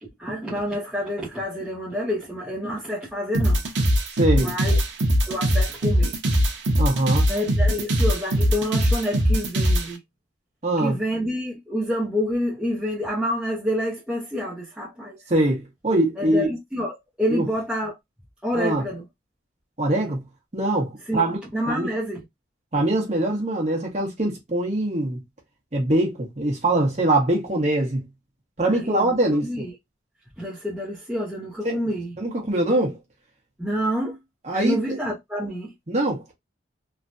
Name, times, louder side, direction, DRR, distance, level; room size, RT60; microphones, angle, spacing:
voice 1, 0.0-3.6 4.3-4.8 5.3-6.1 7.3-10.0 10.8-15.2 16.2-18.0 18.4-19.1 21.1-21.2 21.5-22.2 28.6-29.8 30.4-32.2 33.6-34.2 34.5-35.7, equal, 5° right, 0.7 m, -28 dB
sound 1, 3.3-9.9, equal, 70° right, 0.7 m, -21 dB
voice 2, 4.2-4.5 6.8-7.3 10.6-11.0 15.3-16.5 17.3-17.4 18.5-18.8 19.8-20.2 20.5-21.4 21.7-21.9 22.7-25.2 25.7-28.0 28.6-29.4 31.6-31.8 32.2-33.0 34.5-34.8 35.9-36.3, right 1 dB, 35° right, 1.1 m, -23 dB
3.2 x 2.2 x 2.6 m
head